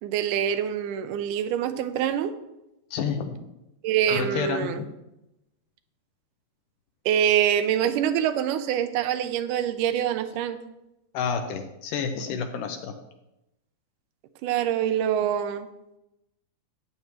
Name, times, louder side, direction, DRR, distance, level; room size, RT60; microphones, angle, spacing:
voice 1, 0.0-2.3 3.8-4.8 7.1-10.6 14.4-15.7, right 10 dB, 80° right, 8 dB, 2.2 m, -25 dB
voice 2, 2.9-3.5 4.1-4.9 11.1-12.9, left 6 dB, 75° left, 6 dB, 2.2 m, -29 dB
14.0 x 8.8 x 3.1 m, 0.89 s
omnidirectional pair, 4.0 m